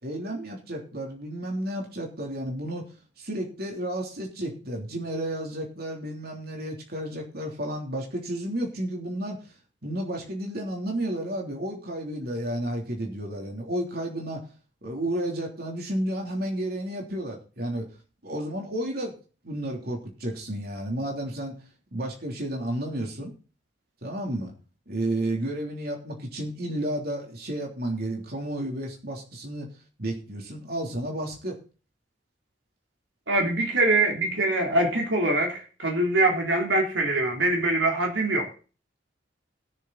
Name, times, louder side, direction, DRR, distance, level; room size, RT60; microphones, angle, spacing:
voice 1, 0.0-2.9 3.2-9.4 9.8-14.4 14.8-17.9 18.2-19.2 19.4-21.6 21.9-23.3 24.0-24.5 24.9-29.7 30.0-31.6, right 1 dB, 55° right, 3.3 m, -32 dB
voice 2, 33.3-38.5, right 2 dB, 75° right, 3.3 m, -23 dB
20.5 x 7.0 x 4.1 m
head